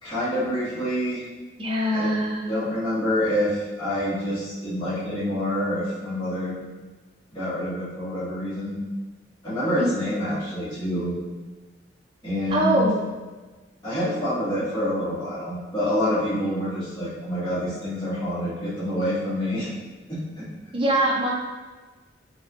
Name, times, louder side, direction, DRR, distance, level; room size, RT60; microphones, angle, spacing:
voice 1, 0.0-1.2 1.9-2.1 2.5-6.5 7.3-8.8 9.4-11.1 12.2-12.9 13.8-19.7 20.1-20.4, left 1 dB, 25° left, -12 dB, 1.4 m, -27 dB
voice 2, 1.6-2.5 9.8-9.9 12.5-13.0 20.7-21.3, right 1 dB, 30° right, -4 dB, 0.5 m, -22 dB
3.4 x 2.6 x 2.4 m, 1.3 s
head